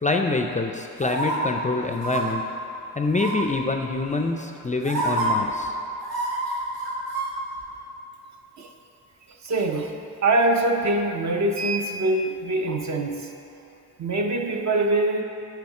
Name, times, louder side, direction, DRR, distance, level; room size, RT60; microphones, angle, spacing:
voice 1, 0.0-2.4 3.0-5.7, left 3 dB, 20° left, 3 dB, 0.4 m, -25 dB
sound 1, 1.0-1.4 2.0-2.2 3.1-3.5 4.4-4.5 4.8-5.3 6.0-7.3 7.6-7.7, right 2 dB, 85° right, 1.6 m, -27 dB
voice 2, 9.4-9.9 10.2-13.3 14.0-15.2, right 2 dB, 50° right, 3 dB, 0.8 m, -23 dB
9.4 x 4.7 x 4.8 m, 2.8 s
cardioid pair, 100°, 35 cm